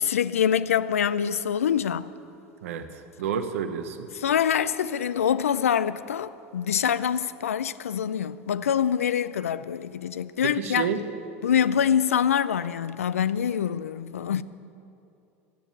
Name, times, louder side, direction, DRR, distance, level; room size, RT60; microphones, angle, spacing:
voice 1, 0.0-2.1 4.1-10.9 11.4-14.4, left 8 dB, 90° left, 0.4 m, -25 dB
voice 2, 3.2-4.1 10.4-11.0, right 7 dB, 75° right, 0.9 m, -29 dB
12.5 x 9.2 x 7.9 m
hypercardioid pair, 80°, 7 cm